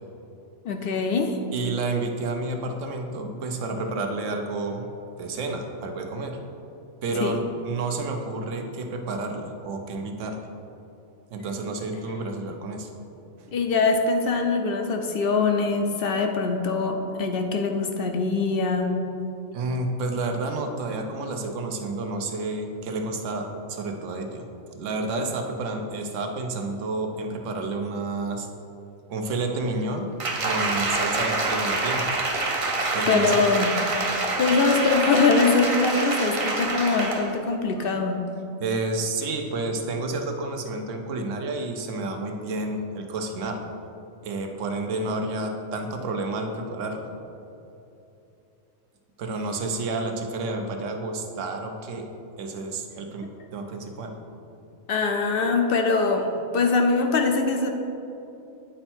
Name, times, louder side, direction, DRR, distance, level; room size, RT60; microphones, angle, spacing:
voice 1, 0.6-1.4 7.2-7.4 13.5-19.0 33.1-33.8 34.4-38.2 54.9-57.7, left 4 dB, 60° left, 4 dB, 0.6 m, -23 dB
voice 2, 1.5-4.9 5.2-6.4 7.0-10.4 11.3-12.9 13.4-13.5 19.5-28.5 29.1-30.1 30.4-32.2 32.9-33.5 38.6-43.6 44.2-47.1 49.2-52.1 52.4-54.2, right 2 dB, 70° right, 4 dB, 1.0 m, -30 dB
Applause, 30.2-37.3 37.8-37.9, right 2 dB, 40° right, 0.5 m, -26 dB
8.9 x 4.4 x 4.4 m, 2.8 s
omnidirectional pair, 1.4 m